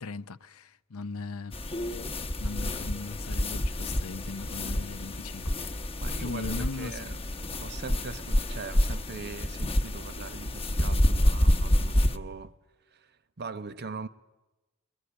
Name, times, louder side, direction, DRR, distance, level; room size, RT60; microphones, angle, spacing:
voice 1, 0.0-1.9 2.4-7.1, left 3 dB, 80° left, 0.7 m, -39 dB
sound 1, 1.5-12.2, left 1 dB, 25° left, 0.9 m, -28 dB
voice 2, 6.0-12.5 12.9-14.1, right 4 dB, 50° right, 0.9 m, -41 dB
22.0 x 21.0 x 9.9 m
head